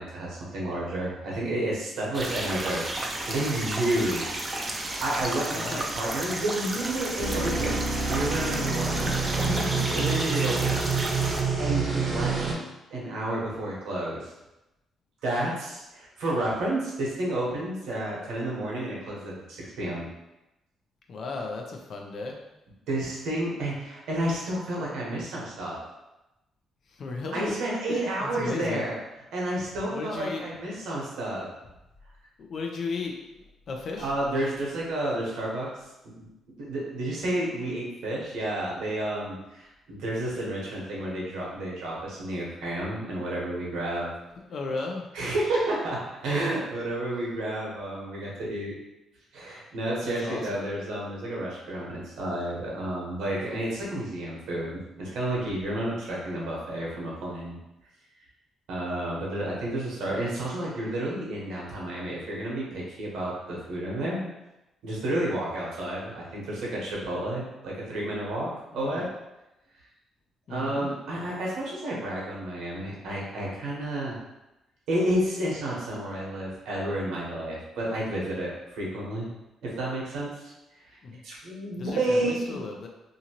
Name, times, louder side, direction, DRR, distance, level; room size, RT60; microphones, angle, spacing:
voice 1, 0.0-2.9 3.3-9.1 9.9-10.9 11.6-12.5 12.9-14.3 15.2-20.1 22.9-25.8 27.3-29.0 29.3-31.5 34.0-35.7 36.2-36.3 36.6-44.1 45.1-48.7 49.3-57.6 58.7-64.3 64.8-69.1 70.5-74.2 74.9-79.3 79.6-80.5 81.2-82.6, right 1 dB, 85° right, -4 dB, 1.0 m, -31 dB
sound 1, 2.1-11.4, right 2 dB, 25° right, 0.4 m, -32 dB
sound 2, 7.2-12.5, right 4 dB, 50° right, 0.7 m, -27 dB
voice 2, 9.0-10.1 10.5-10.6 21.1-22.4 27.0-27.6 27.8-28.8 29.9-30.4 32.4-33.1 33.7-34.1 44.5-45.1 50.0-50.7 68.7-69.0 70.5-70.9 81.0-81.2 81.8-82.9, left 3 dB, 55° left, 2 dB, 0.5 m, -35 dB
2.7 x 2.5 x 2.9 m, 0.95 s
cardioid pair, 90°, 0 cm